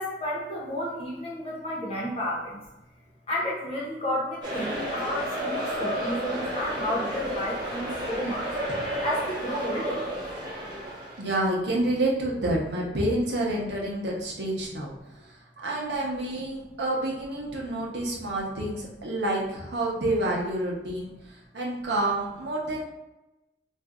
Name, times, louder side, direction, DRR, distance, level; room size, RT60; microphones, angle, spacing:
voice 1, 0.0-2.6 3.3-8.5 9.0-10.0, equal, 35° left, -5 dB, 0.7 m, -31 dB
sound 1, 4.4-11.2, equal, 25° right, 0.8 m, -32 dB
voice 2, 11.2-22.8, right 1 dB, 80° right, -2 dB, 0.8 m, -29 dB
2.5 x 2.3 x 3.6 m, 1.0 s
head